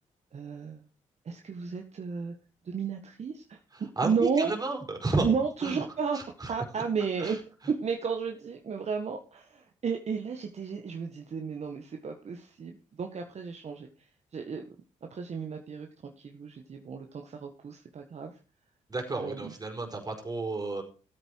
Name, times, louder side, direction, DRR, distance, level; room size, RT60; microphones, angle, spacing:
voice 1, 0.3-0.8 1.2-2.3 2.6-3.6 4.0-4.5 5.2-6.2 6.5-7.4 7.8-13.9 14.3-14.6 15.1-15.9 16.2-18.3 19.1-19.5, right 5 dB, 55° right, 4 dB, 1.6 m, -33 dB
voice 2, 3.7-5.3 5.6-5.8 6.1-6.5 7.2-7.4 18.9-20.8, right 3 dB, 30° right, 2 dB, 5.0 m, -32 dB
13.5 x 8.6 x 4.7 m, 0.36 s
cardioid pair, 75°, 13 cm